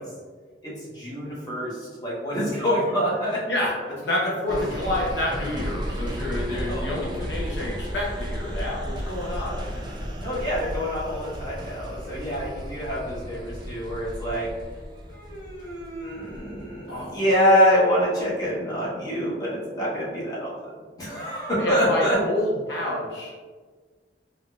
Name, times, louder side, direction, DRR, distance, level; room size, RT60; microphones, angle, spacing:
voice 1, 0.6-3.4 4.5-4.6 6.3-7.0 10.2-14.5 15.1-20.5 21.0-22.2, equal, 20° left, -8 dB, 1.0 m, -26 dB
voice 2, 3.5-9.8 16.9-17.2 21.6-23.4, left 1 dB, 70° left, -4 dB, 0.6 m, -28 dB
sound 1, 4.5-17.0 17.4-17.5, equal, 25° right, 0.4 m, -34 dB
3.7 x 2.4 x 2.3 m, 1.4 s
head